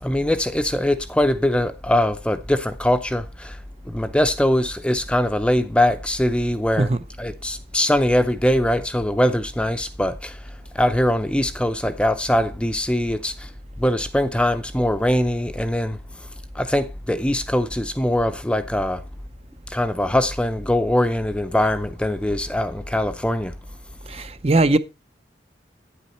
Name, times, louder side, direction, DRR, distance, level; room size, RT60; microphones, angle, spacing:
voice 1, 0.0-3.6 3.9-6.9 7.2-10.4 10.7-13.5 13.8-16.0 16.5-19.0 19.7-23.5, left 1 dB, 5° left, 0.6 m, -22 dB
voice 2, 24.1-24.8, right 2 dB, 35° right, 0.6 m, -19 dB
10.0 x 8.3 x 4.3 m
head